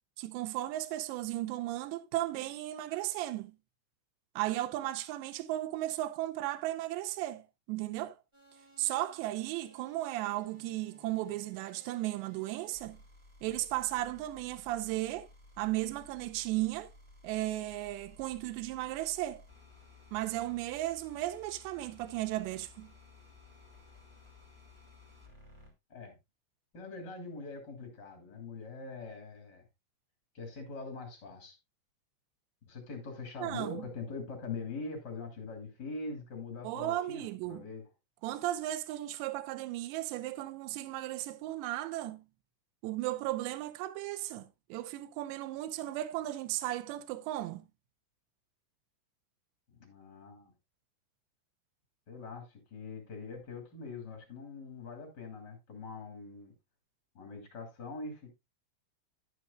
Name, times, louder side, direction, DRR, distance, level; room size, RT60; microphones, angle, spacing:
voice 1, 0.2-3.6 4.4-7.4 7.7-8.2 8.8-13.0 13.4-15.3 15.6-16.9 17.2-19.4 20.1-22.9 33.4-33.8 36.6-37.6 38.2-42.2 42.8-47.6, right 15 dB, 85° right, 2.6 m, -35 dB
sound 1, 8.3-25.7, left 2 dB, 15° right, 0.9 m, -58 dB
voice 2, 26.7-29.6 30.3-31.6 32.7-37.8 49.7-50.5 52.1-56.5 57.1-58.3, left 4 dB, 35° left, 1.7 m, -43 dB
11.0 x 9.8 x 2.3 m
omnidirectional pair, 5.9 m